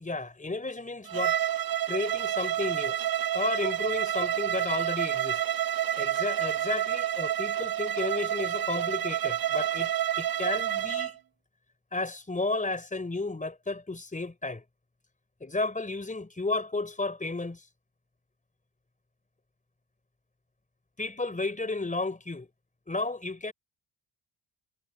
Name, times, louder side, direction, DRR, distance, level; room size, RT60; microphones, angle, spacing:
voice 1, 0.0-1.4 1.9-3.0 3.3-5.4 6.0-9.9 10.2-11.2 11.9-14.6 15.4-17.6 21.0-22.5 22.9-23.5, left 3 dB, 15° left, 4.0 m, -32 dB
Bowed string instrument, 1.1-11.1, right 11 dB, 45° right, 0.7 m, -29 dB
cardioid pair, 95°, 48 cm